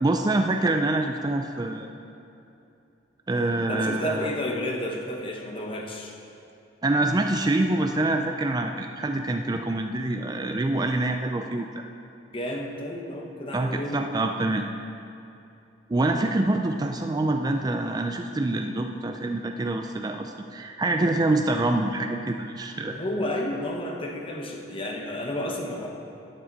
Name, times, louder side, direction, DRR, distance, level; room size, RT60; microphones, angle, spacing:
voice 1, 0.0-1.9 3.3-4.3 6.8-11.7 13.5-14.7 15.9-23.0, right 2 dB, 20° right, 4 dB, 0.4 m, -25 dB
voice 2, 3.7-6.1 12.3-14.2 20.9-21.2 22.8-25.9, left 1 dB, 30° left, 0 dB, 1.0 m, -31 dB
12.0 x 8.7 x 4.1 m, 2.8 s
head